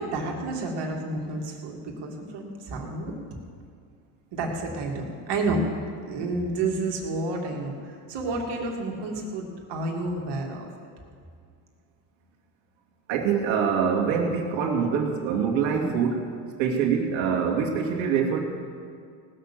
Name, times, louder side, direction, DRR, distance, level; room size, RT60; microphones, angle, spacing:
voice 1, 0.0-3.1 4.3-5.6 6.1-10.7 15.7-16.0, right 2 dB, 55° right, 1 dB, 2.8 m, -30 dB
voice 2, 13.1-16.3 16.6-18.4, right 6 dB, 75° right, 0 dB, 2.5 m, -24 dB
18.5 x 6.7 x 7.4 m, 2.2 s
supercardioid pair, 90°, 47 cm